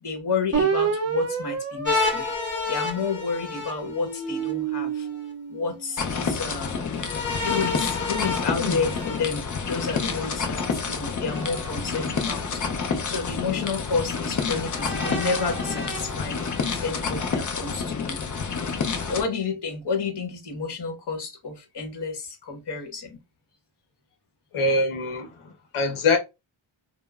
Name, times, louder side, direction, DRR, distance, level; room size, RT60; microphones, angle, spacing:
voice 1, 0.0-2.2 2.7-5.1 5.5-6.8 7.4-18.2 19.1-23.2, left 4 dB, 55° left, 1.0 m, -30 dB
sound 1, 0.5-3.2 3.8-6.3, right 6 dB, 30° right, 0.5 m, -29 dB
sound 2, 1.8-4.5 6.9-10.0 11.3-12.2 13.0-13.1 14.7-16.7, left 3 dB, 25° left, 1.0 m, -31 dB
sound 3, 6.0-19.2, left 5 dB, 40° left, 0.5 m, -29 dB
voice 2, 24.5-26.2, left 3 dB, 75° left, 0.8 m, -24 dB
2.9 x 2.0 x 2.3 m
wide cardioid pair, 85°, 50 cm